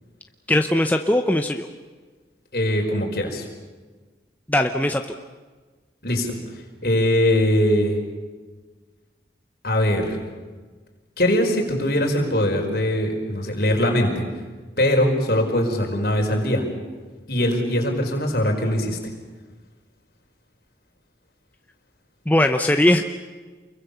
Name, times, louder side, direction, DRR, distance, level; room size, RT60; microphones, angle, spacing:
voice 1, 0.5-1.7 4.5-5.2 22.3-23.0, left 1 dB, 10° left, 5 dB, 0.8 m, -19 dB
voice 2, 2.5-3.5 6.0-6.4 6.8-8.0 9.6-10.2 11.2-14.2 14.8-16.7 17.3-19.0, left 1 dB, 55° left, 2 dB, 4.8 m, -21 dB
28.5 x 22.5 x 7.0 m, 1.4 s
head